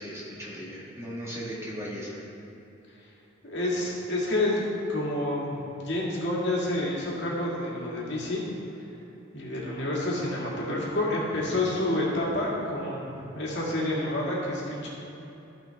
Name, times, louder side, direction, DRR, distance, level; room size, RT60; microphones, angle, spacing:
voice 1, 0.0-2.3, equal, 15° right, -6 dB, 1.5 m, -37 dB
voice 2, 3.4-4.6 4.9-8.5 9.3-14.9, left 1 dB, 60° left, -5 dB, 2.1 m, -29 dB
15.0 x 5.6 x 3.5 m, 3.0 s
head